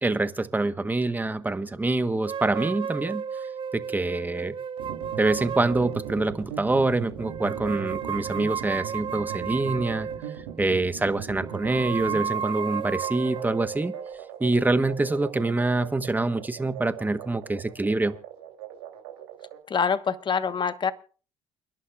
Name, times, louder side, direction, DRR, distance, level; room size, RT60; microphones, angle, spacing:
voice 1, 0.0-3.2 3.9-4.6 5.2-10.1 10.6-13.9 14.4-18.2, right 2 dB, 15° right, 11 dB, 1.2 m, -25 dB
sound 1, 2.2-6.4 7.2-10.6 11.4-15.8, right 7 dB, 40° right, 0.7 m, -34 dB
sound 2, 4.8-19.6, right 10 dB, 90° right, 3.2 m, -39 dB
voice 2, 19.7-20.9, left 6 dB, 35° left, 12 dB, 1.2 m, -25 dB
29.0 x 11.5 x 2.4 m, 0.38 s
hypercardioid pair, 65°, 13 cm